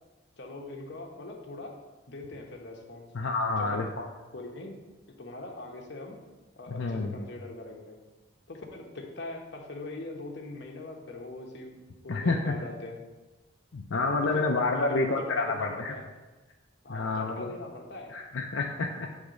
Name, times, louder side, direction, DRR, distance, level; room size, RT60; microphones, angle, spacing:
voice 1, 0.4-1.8 2.1-3.1 3.6-3.8 4.3-4.8 5.1-6.2 6.6-8.0 8.5-13.0 14.2-16.1 16.8-18.2, left 2 dB, 65° left, 1 dB, 1.1 m, -41 dB
voice 2, 3.1-4.1 6.7-7.1 12.1-12.4 13.7-16.0 16.9-17.5 18.1-19.1, left 3 dB, 90° left, 1 dB, 0.6 m, -29 dB
8.0 x 3.6 x 5.1 m, 1.2 s
head